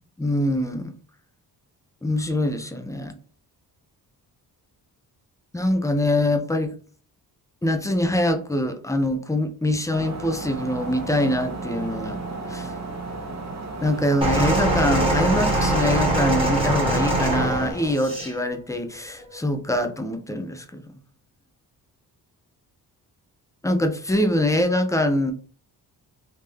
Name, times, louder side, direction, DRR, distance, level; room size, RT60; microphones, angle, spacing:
voice 1, 0.2-0.9 2.0-3.1 5.5-6.7 7.6-12.2 12.5-12.7 13.8-20.8 23.6-25.3, left 1 dB, 10° left, 7 dB, 0.6 m, -24 dB
sound 1, 9.9-17.7, right 3 dB, 40° right, 1.2 m, -33 dB
sound 2, 14.2-18.3 19.2-19.3, right 1 dB, 15° right, 1.6 m, -23 dB
3.7 x 2.7 x 3.2 m, 0.40 s
cardioid pair, 90°, 40 cm